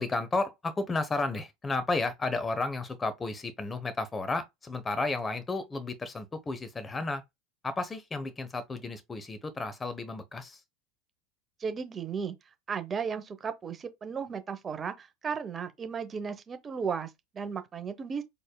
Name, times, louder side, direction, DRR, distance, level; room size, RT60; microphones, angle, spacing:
voice 1, 0.0-7.2 7.6-10.6, left 3 dB, 20° left, 1.0 m, -32 dB
voice 2, 11.6-12.3 12.7-18.2, right 6 dB, 30° right, 0.8 m, -35 dB
4.2 x 3.4 x 2.3 m
hypercardioid pair, 80°, 0 cm